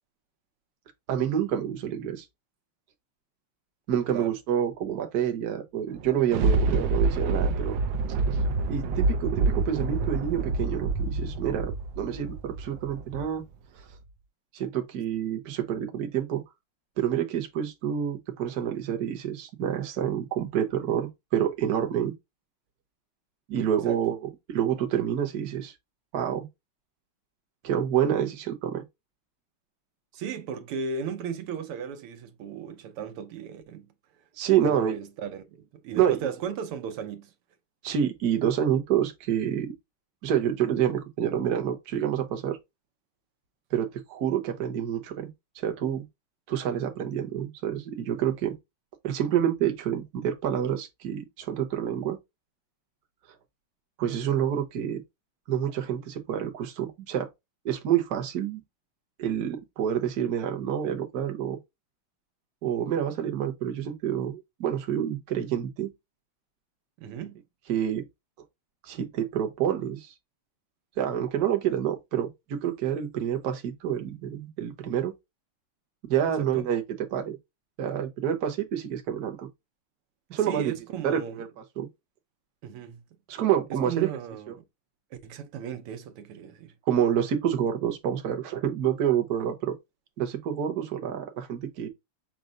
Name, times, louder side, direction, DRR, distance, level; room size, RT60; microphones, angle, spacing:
voice 1, 1.1-2.2 3.9-7.8 8.3-8.4 8.7-13.4 14.5-16.4 17.0-22.1 23.5-25.7 26.1-26.5 27.6-28.8 34.4-35.0 36.0-36.2 37.8-39.7 40.2-42.6 43.7-45.3 45.5-46.1 46.5-48.5 49.0-52.2 54.0-55.0 55.5-57.3 57.6-58.6 59.2-61.6 62.6-65.9 67.7-68.1 68.8-70.1 71.0-75.1 76.1-77.4 77.8-79.5 80.3-80.7 81.0-81.5 81.8-81.9 83.3-84.1 86.9-89.8 90.2-91.9, right 9 dB, 55° right, 1.3 m, -28 dB
Thunder, 5.9-13.4 13.9-14.0, right 3 dB, 70° right, 1.3 m, -27 dB
voice 2, 30.1-33.9 34.6-37.3 67.0-67.4 76.4-76.7 80.5-81.4 82.6-83.0 83.8-84.6 85.2-86.7, right 7 dB, 90° right, 1.8 m, -36 dB
6.3 x 2.2 x 3.9 m
omnidirectional pair, 2.4 m